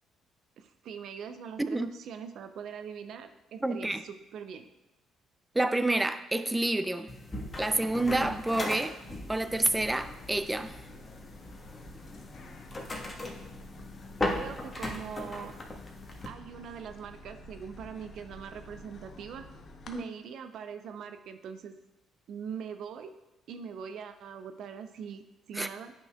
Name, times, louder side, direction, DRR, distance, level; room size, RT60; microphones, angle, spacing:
voice 1, 0.6-4.6 14.2-15.5 16.3-19.5 19.9-21.8 22.3-23.1 23.5-25.9, right 7 dB, 65° right, 9 dB, 0.5 m, -42 dB
voice 2, 1.6-1.9 3.6-4.0 5.5-7.1 7.6-9.0 9.3-10.8 19.9-20.0 25.5-25.7, right 2 dB, 15° right, 11 dB, 0.5 m, -28 dB
sound 1, 7.1-16.3, left 2 dB, 30° left, 1.3 m, -38 dB
sound 2, 9.5-20.0, left 1 dB, 50° left, 0.8 m, -50 dB
9.8 x 5.5 x 2.3 m, 1.0 s
hypercardioid pair, 55°, 0 cm